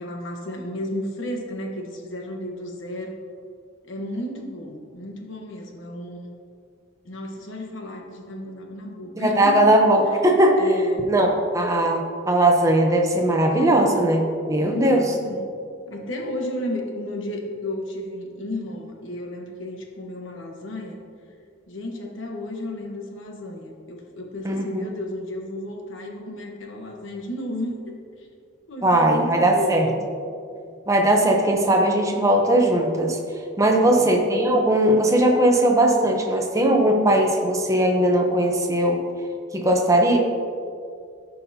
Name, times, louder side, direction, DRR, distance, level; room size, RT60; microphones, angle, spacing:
voice 1, 0.0-3.2 3.8-6.3 7.0-10.0 10.6-11.1 14.6-15.4 15.9-21.0 21.7-28.3 28.7-30.0 33.8-34.2, left 1 dB, 85° left, 1 dB, 1.2 m, -33 dB
voice 2, 9.2-10.6 11.1-15.0 24.4-24.8 28.8-29.9 30.9-33.2 33.6-39.0 39.5-40.2, right 1 dB, 15° right, 2 dB, 0.7 m, -19 dB
14.0 x 5.5 x 2.8 m, 2.4 s
head